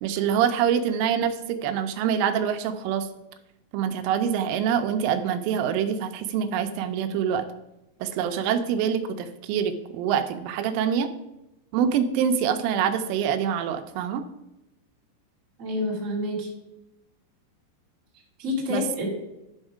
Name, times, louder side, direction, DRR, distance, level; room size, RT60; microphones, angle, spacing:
voice 1, 0.0-3.1 3.7-7.4 8.0-11.1 11.7-14.2 18.7-19.1, right 8 dB, 85° right, 8 dB, 3.3 m, -25 dB
voice 2, 15.6-16.5 18.4-19.1, left 2 dB, 30° right, -4 dB, 1.5 m, -28 dB
11.5 x 5.3 x 4.9 m, 0.93 s
omnidirectional pair, 5.7 m